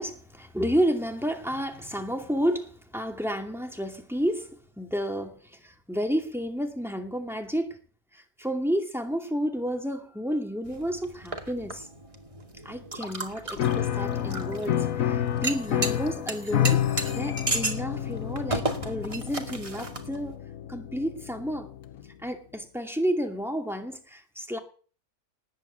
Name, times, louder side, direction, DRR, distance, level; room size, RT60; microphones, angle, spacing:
voice 1, 0.0-7.8 8.1-11.9 12.6-20.4 20.7-21.7 22.2-24.6, equal, ahead, 2.4 m, -31 dB
sound 1, 10.6-20.4, right 2 dB, 20° right, 2.3 m, -35 dB
Piano, 13.6-22.0, left 10 dB, 65° left, 1.3 m, -29 dB
19.0 x 8.4 x 8.2 m
omnidirectional pair, 1.5 m